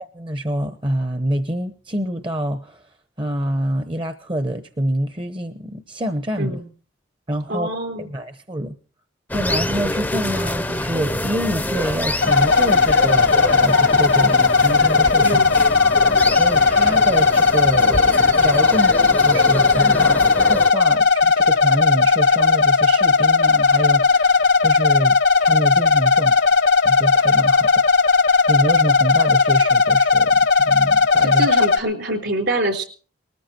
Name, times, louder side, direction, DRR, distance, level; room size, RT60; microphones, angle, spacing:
voice 1, 0.1-2.9 3.2-6.6 7.3-7.7 8.0-8.8 9.3-15.4 16.3-26.5 26.8-27.8 28.5-31.5, right 1 dB, 25° right, 9 dB, 0.8 m, -26 dB
voice 2, 7.5-8.1 15.2-15.6 31.4-32.8, right 1 dB, 65° right, 6 dB, 3.8 m, -25 dB
sound 1, 9.3-20.7, left 1 dB, 10° left, 0.6 m, -27 dB
sound 2, 12.2-31.8, left 4 dB, 60° left, 0.9 m, -16 dB
20.0 x 14.0 x 4.4 m, 0.41 s
head